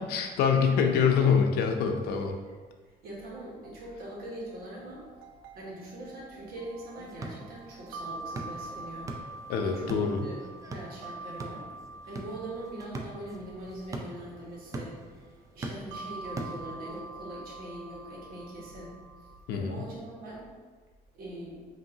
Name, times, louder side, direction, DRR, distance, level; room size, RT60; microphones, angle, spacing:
voice 1, 0.1-2.3 9.5-10.3 19.5-19.8, left 6 dB, 85° left, 4 dB, 0.5 m, -25 dB
voice 2, 3.0-5.0 5.5-9.1 9.6-9.9 10.2-10.4 10.7-11.7 12.0-20.5 21.1-21.6, right 1 dB, 70° right, -5 dB, 1.4 m, -42 dB
sound 1, 3.6-19.4, right 3 dB, 90° right, 0.4 m, -46 dB
sound 2, 6.9-17.1, right 2 dB, 20° right, 0.4 m, -43 dB
5.4 x 2.8 x 2.7 m, 1.4 s
cardioid pair, 130°, 16 cm